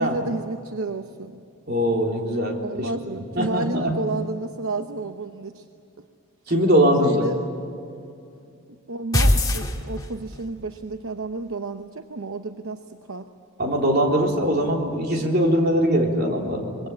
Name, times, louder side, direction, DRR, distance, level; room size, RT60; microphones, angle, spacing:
voice 1, 0.0-1.4 2.6-5.7 7.0-7.4 8.7-13.3, right 3 dB, 65° right, 7 dB, 0.9 m, -31 dB
voice 2, 1.7-4.0 6.5-7.2 13.6-16.9, equal, 45° right, 0 dB, 3.7 m, -22 dB
sound 1, 9.1-10.4, left 1 dB, 15° left, 1.9 m, -20 dB
25.0 x 22.5 x 8.7 m, 2.5 s
head